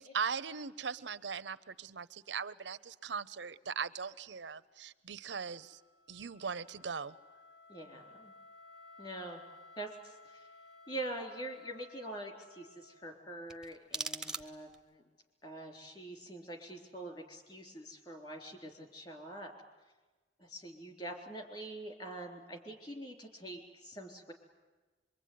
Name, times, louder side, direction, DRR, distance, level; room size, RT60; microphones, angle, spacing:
voice 1, 0.0-5.8 6.1-7.1, right 6 dB, 90° right, 14 dB, 0.8 m, -39 dB
Wind instrument woodwind instrument, 5.3-13.4, left 3 dB, 70° left, 1.6 m, -57 dB
voice 2, 7.7-8.3 9.0-9.4 9.8-10.5 10.9-15.0 15.4-19.5 20.4-24.3, right 1 dB, 30° left, 4 dB, 3.8 m, -45 dB
sound 1, 13.5-14.9, right 3 dB, 5° right, 0.9 m, -41 dB
24.5 x 23.0 x 9.5 m, 1.2 s
head